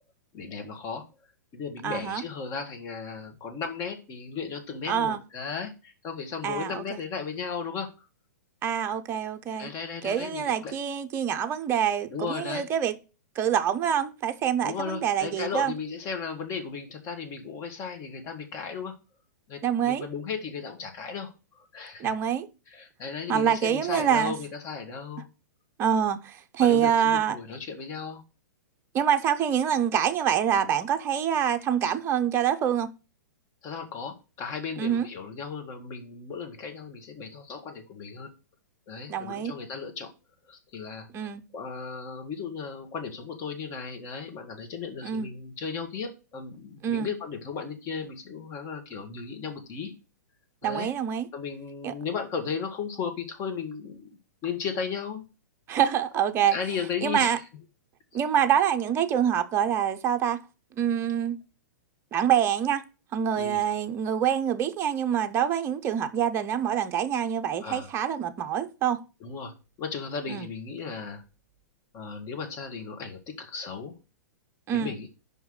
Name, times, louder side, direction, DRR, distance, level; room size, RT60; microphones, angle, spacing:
voice 1, 0.3-1.0 1.5-8.1 9.6-10.7 12.1-12.6 14.6-18.9 19.5-22.1 22.7-25.2 26.6-28.2 33.6-38.3 38.9-40.1 40.5-49.9 50.6-50.9 51.3-54.1 54.4-55.2 56.5-57.4 63.3-63.6 67.6-67.9 69.2-71.2 71.9-73.9 74.7-75.1, left 5 dB, 30° left, 1.4 m, -35 dB
voice 2, 1.8-2.2 4.9-5.2 6.4-7.0 8.6-9.7 10.0-13.0 13.4-15.7 19.6-20.1 22.0-22.5 23.3-24.4 25.8-27.4 28.9-32.9 34.8-35.1 39.1-39.5 41.1-41.4 45.0-45.3 46.8-47.1 50.6-51.3 51.8-51.9 55.7-56.6 57.0-57.4 58.1-60.4 60.8-61.4 62.1-62.8 63.1-69.0 70.3-70.5 74.7-75.0, right 9 dB, 25° right, 0.6 m, -26 dB
5.4 x 4.7 x 6.1 m
figure-of-eight pair, 105°, 10 cm